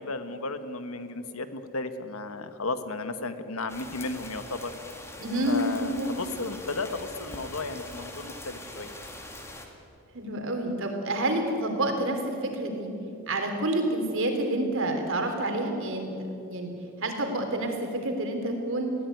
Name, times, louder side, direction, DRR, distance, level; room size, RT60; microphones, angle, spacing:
voice 1, 0.0-4.7 5.5-9.0, left 3 dB, 75° left, 10 dB, 1.4 m, -34 dB
sound 1, 3.7-9.7, left 1 dB, 10° left, 2.2 m, -43 dB
voice 2, 5.2-6.1 10.1-12.9 13.3-16.7 17.0-19.0, right 1 dB, 60° right, 4 dB, 3.4 m, -28 dB
20.5 x 16.0 x 9.3 m, 2.7 s
head